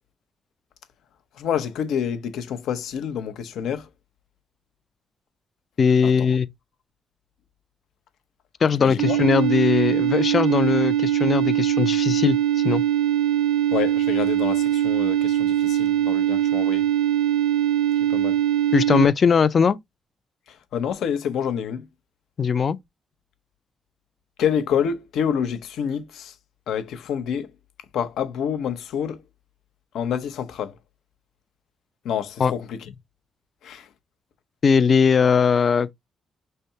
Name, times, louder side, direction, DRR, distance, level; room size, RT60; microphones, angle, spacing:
voice 1, 1.4-3.9 6.0-6.3 8.8-9.2 13.7-16.9 18.1-18.4 20.5-21.9 24.4-26.3 26.7-27.5 27.9-29.2 29.9-30.8 32.0-32.9 33.6-33.9, left 8 dB, 85° left, 0.7 m, -28 dB
voice 2, 5.8-6.5 8.6-12.4 12.6-12.8 18.7-19.8 22.4-22.8 32.4-32.5 34.6-35.9, left 6 dB, 50° left, 0.4 m, -19 dB
sound 1, 9.0-19.1, right 11 dB, 80° right, 0.5 m, -22 dB
5.5 x 3.3 x 2.7 m
cardioid pair, 80°, 0 cm